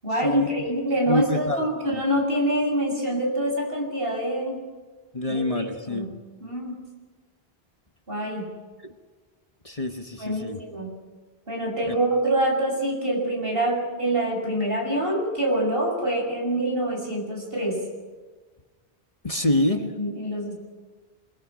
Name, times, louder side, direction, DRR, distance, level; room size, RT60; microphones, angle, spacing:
voice 1, 0.0-4.6 5.3-6.1 6.4-6.8 8.1-8.4 10.2-10.9 11.5-17.8 20.0-20.5, right 1 dB, 65° right, 0 dB, 7.5 m, -26 dB
voice 2, 1.1-1.7 5.1-6.1 9.6-10.6 11.9-12.0 19.2-19.9, left 1 dB, 35° left, 5 dB, 1.4 m, -25 dB
27.5 x 21.5 x 6.4 m, 1.3 s
omnidirectional pair, 1.0 m